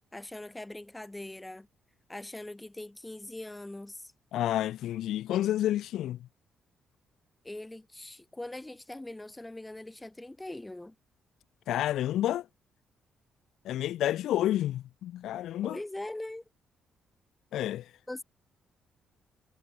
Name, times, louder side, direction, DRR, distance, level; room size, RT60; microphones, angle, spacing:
voice 1, 0.1-1.7 2.1-4.1 7.4-10.9 15.6-16.4 18.1-18.2, left 1 dB, 10° left, 3.5 m, -41 dB
voice 2, 4.3-6.2 11.7-12.5 13.6-15.8 17.5-17.8, left 12 dB, 80° left, 0.4 m, -29 dB
cardioid pair, 90°, 0 cm